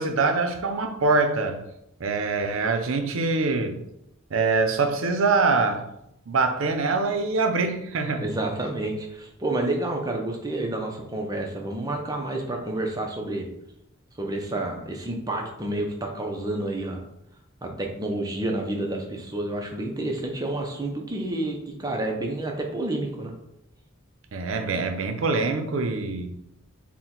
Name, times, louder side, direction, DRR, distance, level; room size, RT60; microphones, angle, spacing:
voice 1, 0.0-1.6 2.0-3.8 4.3-5.8 6.3-8.2 24.3-26.3, right 3 dB, 70° right, 6 dB, 0.5 m, -24 dB
voice 2, 8.2-13.5 14.2-17.0 17.6-23.3, right 2 dB, 15° right, 2 dB, 0.5 m, -29 dB
4.3 x 2.1 x 3.8 m, 0.81 s
head